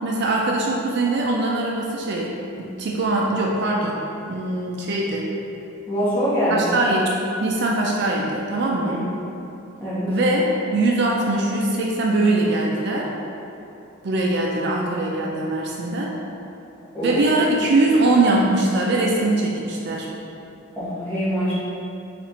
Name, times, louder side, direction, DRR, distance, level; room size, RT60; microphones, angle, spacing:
voice 1, 0.0-2.3 2.6-4.0 4.3-5.3 6.5-7.1 7.4-9.0 10.1-13.1 14.0-16.1 17.0-20.1, right 2 dB, 55° right, -2 dB, 0.4 m, -21 dB
voice 2, 5.9-6.6 8.8-9.0 9.8-10.1 16.9-17.2 20.8-21.5, equal, 10° left, -12 dB, 1.2 m, -24 dB
4.1 x 2.5 x 4.1 m, 2.8 s
head